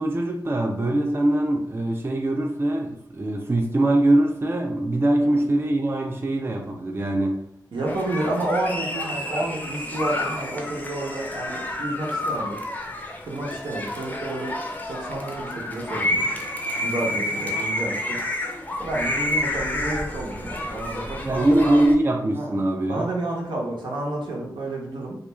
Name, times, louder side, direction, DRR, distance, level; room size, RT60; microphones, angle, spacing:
voice 1, 0.0-7.4 21.2-23.1, right 1 dB, 30° right, 2 dB, 0.4 m, -22 dB
voice 2, 7.7-12.6 13.2-14.6 14.9-16.3 16.8-18.2 18.8-21.8 22.4-22.5 22.9-25.2, right 1 dB, 80° right, -2 dB, 0.7 m, -30 dB
sound 1, 7.9-22.0, left 1 dB, 20° left, 0.5 m, -29 dB
2.3 x 2.2 x 3.0 m, 0.72 s
cardioid pair, 55°, 8 cm